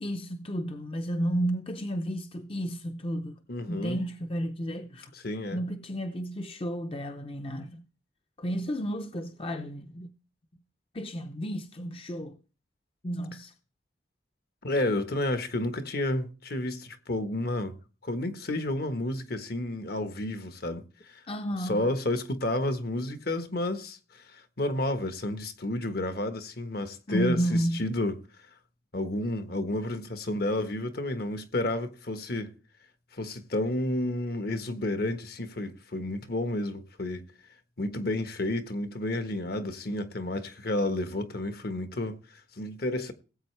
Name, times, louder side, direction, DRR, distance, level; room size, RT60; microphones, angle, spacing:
voice 1, 0.0-3.4 3.7-5.1 5.5-7.8 8.4-10.1 10.9-12.4 13.0-13.5 21.3-21.9 27.1-27.9, equal, 30° left, 0.7 m, -32 dB
voice 2, 3.5-4.0 5.1-5.6 14.6-17.7 18.0-21.2 21.6-28.2 28.9-32.5 33.1-37.2 37.8-42.2 42.6-43.1, left 1 dB, 60° left, 1.3 m, -31 dB
18.0 x 8.2 x 3.3 m
head